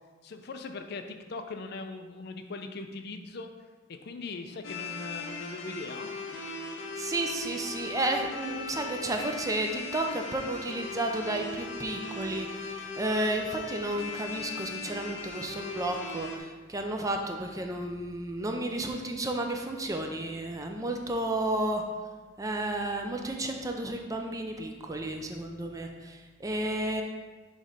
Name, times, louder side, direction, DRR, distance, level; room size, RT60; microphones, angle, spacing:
voice 1, 0.2-3.5 3.9-6.1, left 3 dB, 55° left, 7 dB, 0.5 m, -40 dB
sound 1, 4.6-16.4, left 3 dB, 90° left, 0.8 m, -38 dB
voice 2, 7.0-21.8 22.4-27.0, right 1 dB, 20° right, 3 dB, 0.5 m, -32 dB
6.3 x 3.2 x 5.2 m, 1.3 s
head